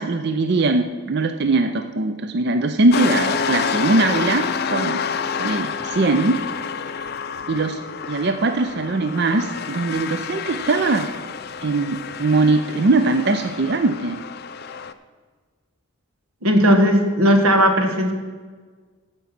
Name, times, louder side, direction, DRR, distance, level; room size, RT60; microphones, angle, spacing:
voice 1, 0.0-5.0 5.4-6.4 7.5-7.8 8.1-11.1 11.6-14.2, right 3 dB, 50° right, 8 dB, 0.5 m, -21 dB
sound 1, 2.9-14.9, left 6 dB, 45° left, 0.4 m, -28 dB
voice 2, 16.4-18.1, equal, 85° right, 4 dB, 1.6 m, -16 dB
15.5 x 5.2 x 6.0 m, 1.5 s
head